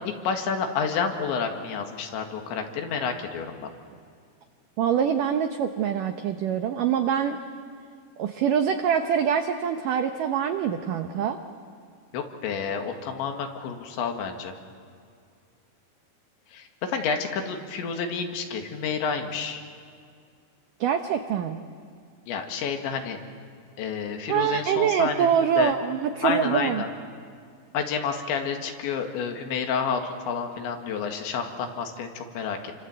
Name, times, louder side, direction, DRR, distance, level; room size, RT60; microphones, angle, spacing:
voice 1, 0.0-3.7 12.1-14.5 16.5-19.6 22.3-23.2 23.8-25.7 26.2-26.9 27.7-32.7, left 6 dB, 85° left, 4 dB, 4.2 m, -29 dB
voice 2, 4.8-7.4 8.2-11.4 20.8-21.6 24.3-26.8, right 8 dB, 85° right, 7 dB, 1.8 m, -24 dB
28.5 x 25.5 x 7.9 m, 2.2 s
omnidirectional pair, 5.2 m